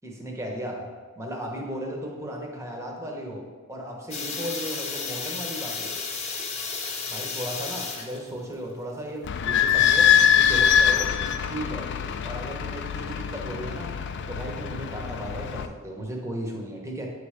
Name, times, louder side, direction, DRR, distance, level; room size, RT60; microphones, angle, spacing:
voice 1, 0.0-0.9 1.2-3.4 3.7-5.9 7.1-10.1 10.3-11.1 11.5-11.9 12.2-13.9 14.3-17.1, equal, 15° right, -1 dB, 1.0 m, -35 dB
sound 1, 4.1-13.0, left 4 dB, 30° left, 0.7 m, -34 dB
Idling / Squeak, 9.2-15.7, left 8 dB, 55° left, 0.4 m, -23 dB
8.9 x 3.3 x 5.0 m, 1.5 s
head